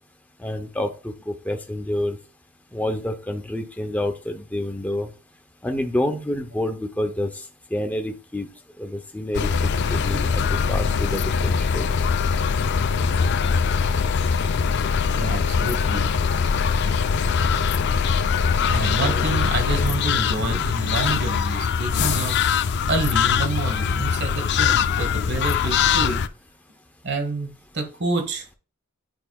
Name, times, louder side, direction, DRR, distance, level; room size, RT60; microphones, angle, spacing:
voice 1, 0.4-2.2 2.7-5.1 5.6-7.3 7.7-8.5 8.8-11.9 19.0-19.2, left 1 dB, 10° left, 4 dB, 0.7 m, -28 dB
sound 1, 9.3-26.3, left 6 dB, 55° left, 0.4 m, -22 dB
voice 2, 15.1-16.0 18.7-22.4 22.9-26.3 27.0-28.5, right 2 dB, 55° right, 5 dB, 1.4 m, -28 dB
10.0 x 4.7 x 2.3 m, 0.35 s
head